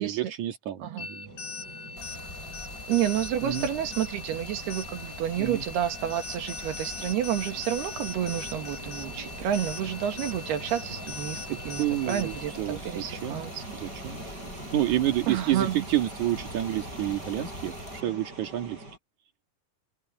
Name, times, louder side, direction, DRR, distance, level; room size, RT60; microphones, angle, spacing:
voice 1, 0.0-1.3 3.4-3.7 5.4-5.6 11.5-13.4 13.7-14.2 14.7-18.8, right 13 dB, 55° right, 3.0 m, -29 dB
sound 1, 1.0-12.6, left 4 dB, 80° left, 8.2 m, -41 dB
sound 2, 1.2-19.0, right 2 dB, 25° right, 8.0 m, -44 dB
Stream, 2.0-18.0, left 2 dB, 15° left, 3.0 m, -45 dB
voice 2, 2.9-13.6 15.3-15.9, right 10 dB, 80° right, 3.9 m, -30 dB
omnidirectional pair, 4.5 m